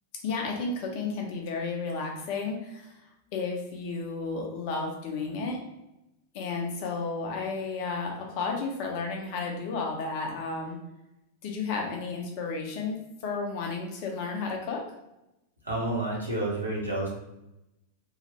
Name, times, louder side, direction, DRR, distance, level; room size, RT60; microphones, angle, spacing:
voice 1, 0.2-2.9 3.3-5.6 6.3-10.8 11.4-14.8, left 4 dB, 45° left, 0 dB, 0.7 m, -32 dB
voice 2, 15.6-17.1, right 2 dB, 80° right, -4 dB, 1.0 m, -29 dB
3.1 x 2.4 x 2.9 m, 0.90 s
figure-of-eight pair, 90°, 0 cm